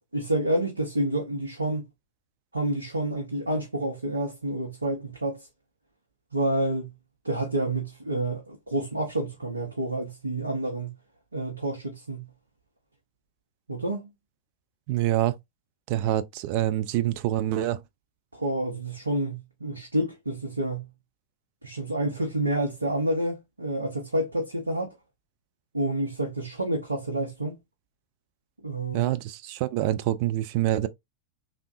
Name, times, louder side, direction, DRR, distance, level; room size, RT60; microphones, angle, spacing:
voice 1, 0.1-1.8 2.5-5.5 6.3-6.9 7.2-10.9 11.3-12.3 13.7-14.1 18.3-20.9 21.6-24.9 25.7-27.6 28.6-29.1, right 1 dB, 80° right, 0.8 m, -29 dB
voice 2, 14.9-15.3 15.9-17.8 28.9-30.9, right 13 dB, 45° right, 0.4 m, -26 dB
3.5 x 2.4 x 2.4 m
figure-of-eight pair, 90°, 0 cm